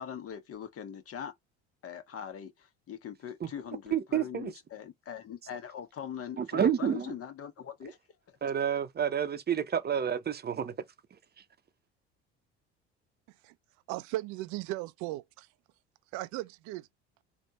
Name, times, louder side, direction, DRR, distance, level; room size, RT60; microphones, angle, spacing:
voice 1, 0.0-1.3 1.8-8.0 8.3-8.4, left 8 dB, 45° left, 1.4 m, -42 dB
voice 2, 3.9-4.5 6.4-7.1 8.4-10.7, right 8 dB, 30° right, 0.8 m, -29 dB
voice 3, 13.9-15.5 16.1-16.9, right 17 dB, 60° right, 0.6 m, -37 dB
3.3 x 2.5 x 4.1 m
hypercardioid pair, 65°, 33 cm